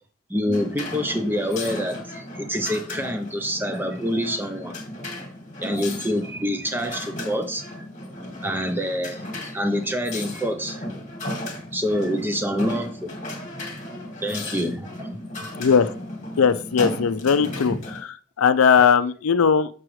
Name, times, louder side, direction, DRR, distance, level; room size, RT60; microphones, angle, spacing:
voice 1, 0.3-4.7 5.6-7.8 8.4-10.9 11.7-13.1 14.2-15.1 18.8-18.9, equal, 10° right, 7 dB, 0.6 m, -26 dB
sound 1, 0.5-18.0, left 1 dB, 35° left, 1.4 m, -35 dB
voice 2, 15.6-15.9 16.4-19.7, left 6 dB, 90° left, 13 dB, 0.5 m, -19 dB
6.2 x 6.1 x 3.1 m, 0.42 s
head